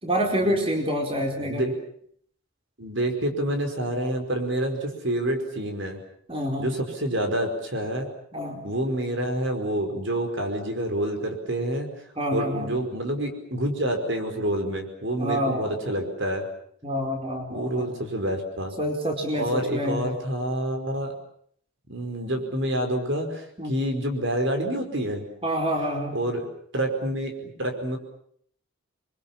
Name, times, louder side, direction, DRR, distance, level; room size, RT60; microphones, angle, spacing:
voice 1, 0.0-1.6 6.3-6.7 8.3-8.6 12.2-12.7 15.2-15.8 16.8-17.9 18.8-20.0 23.6-23.8 25.4-26.1, equal, 25° right, 2 dB, 4.4 m, -27 dB
voice 2, 1.4-1.8 2.8-6.0 6.6-8.1 8.6-11.9 12.3-16.4 17.5-18.7 19.3-21.1 21.9-25.2 26.1-26.5 26.7-28.0, right 1 dB, 60° right, 5 dB, 5.2 m, -28 dB
29.0 x 23.5 x 7.3 m, 0.64 s
head